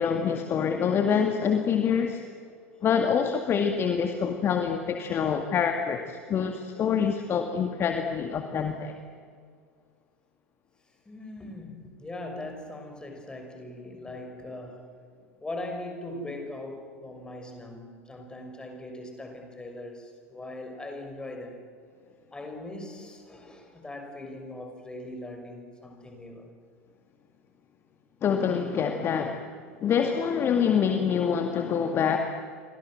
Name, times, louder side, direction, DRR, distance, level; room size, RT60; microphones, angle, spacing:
voice 1, 0.0-2.2 2.8-8.9 28.2-29.4 29.8-32.2, left 7 dB, 30° left, 5 dB, 2.1 m, -26 dB
voice 2, 11.1-14.9 15.4-21.6 22.3-26.5, left 1 dB, 10° left, 4 dB, 6.1 m, -40 dB
30.0 x 24.5 x 7.7 m, 2.1 s
figure-of-eight pair, 80°, 8 cm